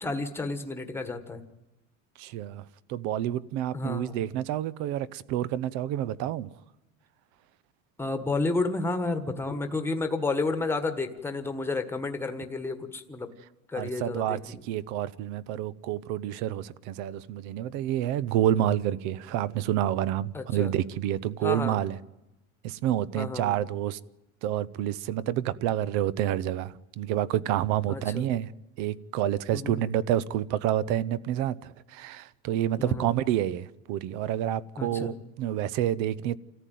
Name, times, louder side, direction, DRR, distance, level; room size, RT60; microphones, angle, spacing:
voice 1, 0.0-1.4 3.7-4.2 8.0-13.3 13.7-14.6 20.3-20.7 21.4-21.8 23.1-23.6 27.9-28.3 29.5-29.9 32.8-33.1 34.8-35.2, left 3 dB, 5° left, 1.5 m, -31 dB
voice 2, 2.2-6.5 13.8-22.0 22.6-24.0 24.4-28.5 28.8-36.4, right 12 dB, 50° right, 0.8 m, -29 dB
27.5 x 14.5 x 9.3 m
supercardioid pair, 150°, 36 cm